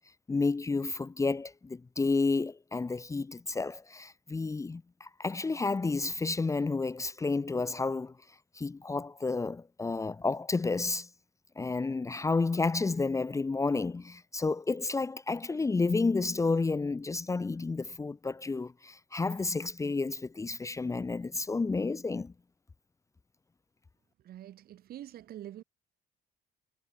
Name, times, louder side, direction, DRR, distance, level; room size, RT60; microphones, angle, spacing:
voice 1, 0.3-8.2 8.5-11.1 11.6-22.3, left 3 dB, 20° left, 0.9 m, -31 dB
voice 2, 24.2-25.6, right 12 dB, 65° right, 5.6 m, -45 dB
cardioid pair, 110°, 17 cm